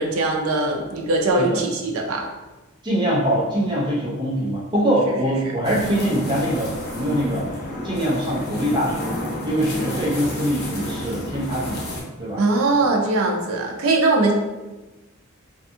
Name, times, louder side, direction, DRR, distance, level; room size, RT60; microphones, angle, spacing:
voice 1, 0.0-2.3 12.4-14.3, right 2 dB, 80° right, 2 dB, 0.5 m, -21 dB
voice 2, 2.8-7.5 7.8-9.1 9.4-12.4 12.8-13.0, equal, 20° right, -8 dB, 0.7 m, -23 dB
sound 1, 5.6-12.0, left 1 dB, 50° left, 0.6 m, -30 dB
2.5 x 2.3 x 2.6 m, 1.1 s
head